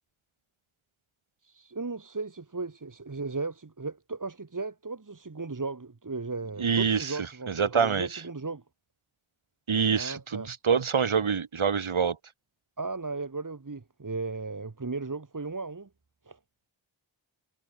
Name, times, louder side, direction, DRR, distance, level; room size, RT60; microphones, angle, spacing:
voice 1, 1.4-8.6 9.9-10.5 12.8-15.9 16.2-16.4, right 3 dB, 40° right, 3.1 m, -36 dB
voice 2, 6.6-7.2 7.5-8.2 9.7-12.2, right 6 dB, 85° right, 2.5 m, -26 dB
wide cardioid pair, 95°, 47 cm